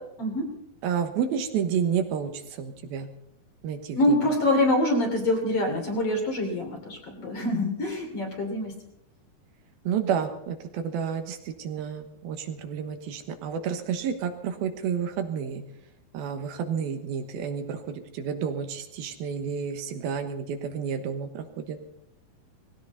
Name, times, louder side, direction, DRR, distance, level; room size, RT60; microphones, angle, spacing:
voice 1, 0.8-3.1 3.6-4.2 9.8-15.6 16.1-21.8, right 7 dB, 75° right, 7 dB, 3.0 m, -30 dB
voice 2, 3.9-8.7, left 1 dB, 40° left, 2 dB, 3.5 m, -25 dB
19.5 x 16.5 x 4.1 m, 0.79 s
omnidirectional pair, 4.5 m